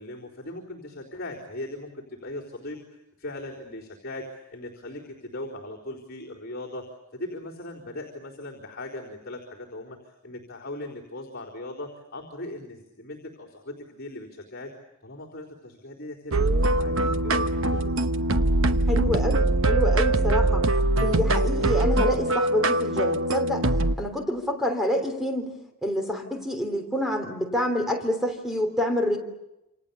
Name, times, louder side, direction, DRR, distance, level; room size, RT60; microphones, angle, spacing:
voice 1, 0.0-14.7 15.0-16.9 17.2-18.1, left 1 dB, 45° left, -5 dB, 4.1 m, -39 dB
sound 1, 16.3-24.0, right 2 dB, 60° right, 1.0 m, -22 dB
voice 2, 18.9-20.6 21.0-23.7 24.0-25.5 25.8-29.2, left 1 dB, ahead, 3 dB, 3.4 m, -27 dB
28.0 x 28.0 x 7.1 m, 0.93 s
head